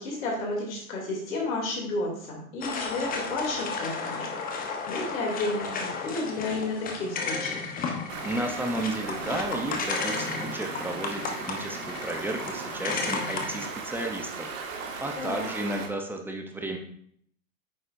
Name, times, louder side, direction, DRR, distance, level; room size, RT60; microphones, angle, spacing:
voice 1, 0.0-7.7 15.1-15.4, left 2 dB, 70° left, -2 dB, 3.1 m, -32 dB
sound 1, 2.6-13.7, left 4 dB, 20° left, 1.0 m, -33 dB
Stream, 8.1-15.9, right 5 dB, 60° right, 1.9 m, -37 dB
voice 2, 8.2-16.8, right 1 dB, 5° right, 3 dB, 0.8 m, -33 dB
9.2 x 6.4 x 2.6 m, 0.65 s
hypercardioid pair, 125°, 43 cm